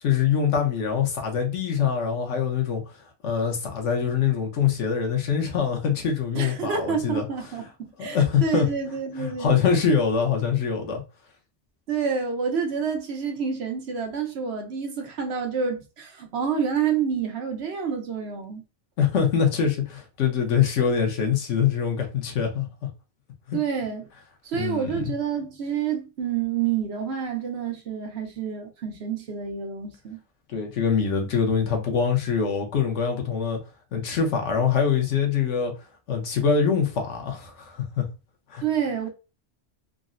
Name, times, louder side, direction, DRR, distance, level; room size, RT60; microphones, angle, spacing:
voice 1, 0.0-2.8 3.2-7.2 8.0-8.7 9.2-11.0 19.0-22.7 23.5-23.6 24.6-25.1 30.5-33.6 33.9-35.7 36.1-38.1 38.5-38.6, left 7 dB, 90° left, 1.1 m, -24 dB
voice 2, 6.3-9.6 11.9-18.6 23.5-24.0 24.4-30.2 38.6-39.1, right 7 dB, 65° right, 1.0 m, -28 dB
3.7 x 2.0 x 2.5 m
omnidirectional pair, 1.2 m